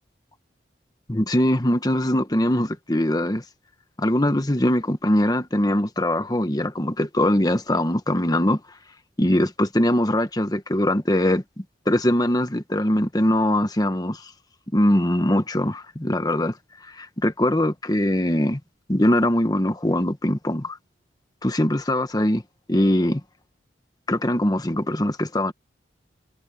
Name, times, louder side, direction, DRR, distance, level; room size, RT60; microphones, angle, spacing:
voice 1, 1.1-3.4 4.0-8.6 9.2-14.3 14.7-16.6 17.0-18.6 18.9-20.8 21.4-22.4 22.7-23.2 24.1-25.5, left 1 dB, 20° left, 1.3 m, -22 dB
head